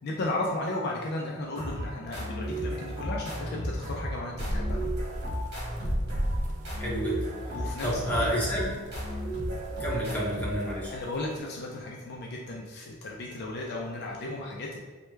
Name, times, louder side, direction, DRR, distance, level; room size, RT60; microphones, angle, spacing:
voice 1, 0.0-4.8 7.5-8.3 8.7-8.8 10.9-14.8, left 2 dB, 55° left, -2 dB, 0.4 m, -35 dB
sound 1, 1.6-11.1, equal, 55° right, 1.3 m, -34 dB
sound 2, 4.3-11.4, equal, 35° right, 0.3 m, -36 dB
voice 2, 6.8-7.2 7.8-8.7 9.8-10.9, equal, 10° left, -7 dB, 0.9 m, -29 dB
3.2 x 2.2 x 3.1 m, 1.4 s
head